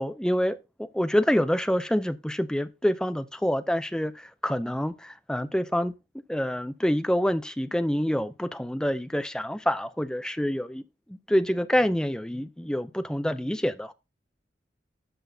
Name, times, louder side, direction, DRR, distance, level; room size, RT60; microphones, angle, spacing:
voice 1, 0.0-5.9 6.3-10.8 11.1-13.9, equal, 5° left, 0.4 m, -27 dB
12.5 x 6.1 x 2.7 m
head